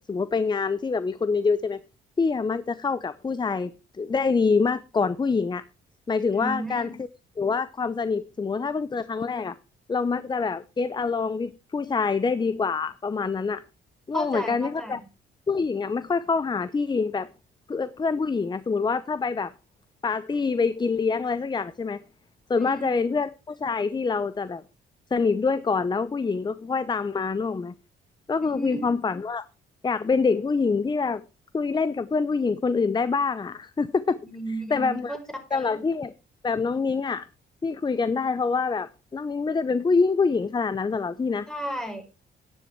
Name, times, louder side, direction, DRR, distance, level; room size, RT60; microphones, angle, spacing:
voice 1, 0.0-1.8 2.2-3.7 4.0-5.6 6.1-7.1 7.4-9.5 9.9-13.6 14.1-15.0 15.5-17.3 17.7-19.5 20.0-22.0 22.5-24.6 25.1-27.7 28.3-29.5 29.8-31.2 31.5-34.2 34.7-35.2 35.5-36.1 36.4-37.3 37.6-41.5, left 4 dB, 20° left, 0.7 m, -25 dB
voice 2, 6.3-6.9 14.1-15.0 22.6-23.0 28.4-28.8 34.2-35.2 35.5-35.8 41.5-42.0, right 1 dB, 5° left, 5.2 m, -34 dB
10.5 x 10.0 x 4.6 m
cardioid pair, 90°, 20 cm